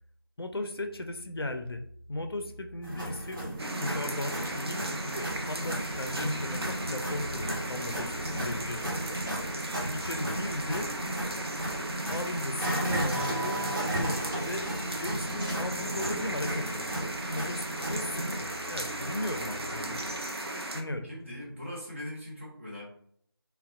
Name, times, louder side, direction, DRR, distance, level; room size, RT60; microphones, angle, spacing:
voice 1, 0.4-1.8 2.1-3.4 3.8-9.2 9.9-10.9 12.1-13.6 14.4-14.7 15.0-20.0 20.7-21.1, left 1 dB, 70° left, 6 dB, 0.4 m, -36 dB
sound 1, 2.8-18.3, right 1 dB, 55° right, 1.0 m, -35 dB
sound 2, 3.6-20.8, right 1 dB, 80° right, 0.5 m, -36 dB
sound 3, 4.0-15.9, equal, 10° left, 1.1 m, -50 dB
voice 2, 21.0-22.8, left 1 dB, 30° right, -6 dB, 0.7 m, -40 dB
2.5 x 2.1 x 2.3 m, 0.65 s
figure-of-eight pair, 170°, 13 cm